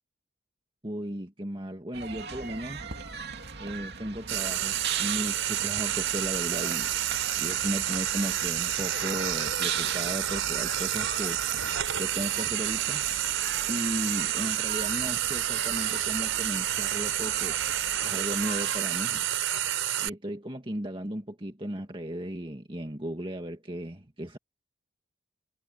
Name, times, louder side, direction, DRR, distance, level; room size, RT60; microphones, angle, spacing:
voice 1, 0.8-2.9 3.6-11.4 12.0-13.1 13.7-19.2 20.0-24.4, equal, 25° right, 2.0 m, -35 dB
sound 1, 1.9-18.8, right 6 dB, 55° right, 3.0 m, -40 dB
Frying (food), 4.3-20.1, right 11 dB, 75° right, 4.9 m, -29 dB
head